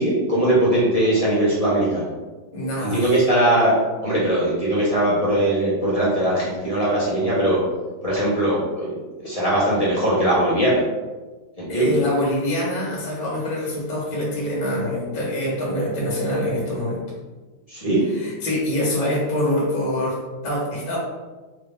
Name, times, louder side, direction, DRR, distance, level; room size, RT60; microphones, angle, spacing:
voice 1, 0.0-2.1 2.8-3.7 4.0-7.6 8.0-8.9 9.2-10.8 11.6-12.0 17.7-18.0, right 1 dB, 25° left, -9 dB, 0.9 m, -20 dB
voice 2, 2.5-3.1 11.7-17.0 18.0-21.0, left 1 dB, 50° left, -5 dB, 1.9 m, -25 dB
4.5 x 2.8 x 3.5 m, 1.3 s
omnidirectional pair, 2.2 m